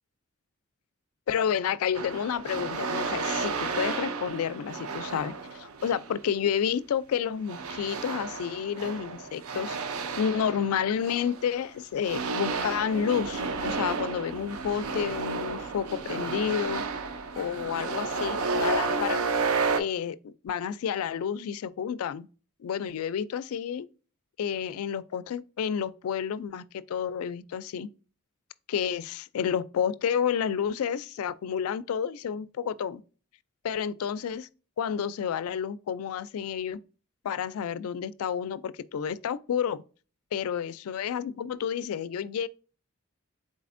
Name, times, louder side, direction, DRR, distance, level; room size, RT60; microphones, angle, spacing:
voice 1, 1.3-9.8 10.2-16.8 17.4-19.2 19.8-22.3 22.6-23.9 24.4-27.9 28.7-33.0 33.6-34.5 34.8-36.8 37.2-39.8 40.3-42.5, left 8 dB, 85° left, 0.3 m, -30 dB
sound 1, 1.9-6.2 7.5-11.6 12.0-19.8, right 4 dB, 85° right, 0.5 m, -32 dB
4.1 x 3.7 x 2.5 m
head